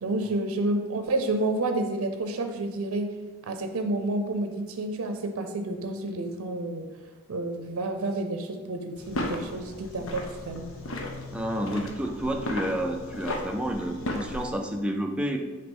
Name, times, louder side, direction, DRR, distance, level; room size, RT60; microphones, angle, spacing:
voice 1, 0.0-3.2 3.4-6.9 7.3-10.7, right 2 dB, 80° right, 6 dB, 0.5 m, -30 dB
sound 1, 9.0-14.5, left 1 dB, 70° left, 0.7 m, -35 dB
voice 2, 11.3-15.4, equal, 5° right, 3 dB, 0.3 m, -30 dB
6.1 x 2.9 x 5.3 m, 1.3 s
head